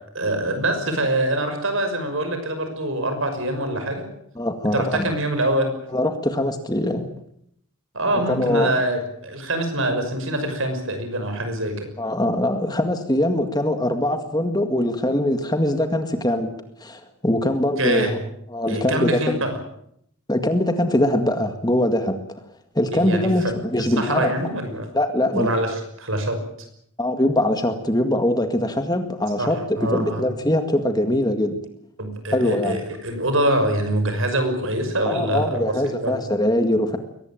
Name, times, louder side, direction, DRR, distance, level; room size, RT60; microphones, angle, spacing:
voice 1, 0.1-4.0 4.7-5.7 7.9-11.9 17.8-18.2 18.7-19.6 22.9-23.5 23.8-24.9 25.3-26.4 29.4-29.5 29.8-30.2 32.0-35.6 36.0-36.2, right 1 dB, 60° right, 7 dB, 6.0 m, -24 dB
voice 2, 4.4-5.1 5.9-7.1 8.3-8.7 12.0-16.5 16.8-18.2 18.5-19.4 20.3-22.2 22.8-24.3 24.9-25.5 27.0-31.6 32.3-32.8 35.1-37.0, left 1 dB, 15° left, 7 dB, 1.9 m, -22 dB
22.5 x 19.0 x 9.0 m, 0.72 s
head